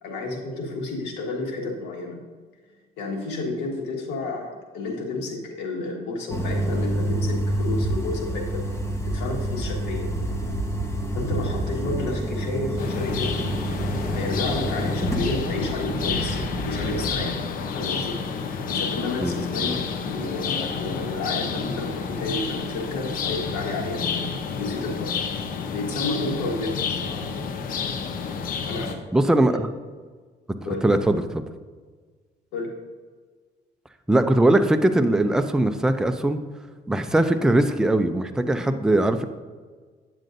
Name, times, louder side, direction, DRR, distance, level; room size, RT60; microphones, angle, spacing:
voice 1, 0.0-2.2 3.0-8.7 9.0-10.1 11.1-13.5 14.1-17.4 17.7-18.2 18.7-25.2 25.7-27.3 28.6-28.9 29.5-29.6 30.6-30.9 32.5-32.7, left 2 dB, 90° left, 1 dB, 1.7 m, -31 dB
sound 1, 6.3-17.1, right 1 dB, 15° left, 1.1 m, -28 dB
sound 2, 12.8-28.9, left 5 dB, 55° left, 0.7 m, -30 dB
voice 2, 29.1-29.7 30.7-31.4 34.1-36.4 36.9-39.3, right 1 dB, 5° right, 7 dB, 0.4 m, -20 dB
9.1 x 7.5 x 2.6 m, 1.5 s
cardioid pair, 110°, 17 cm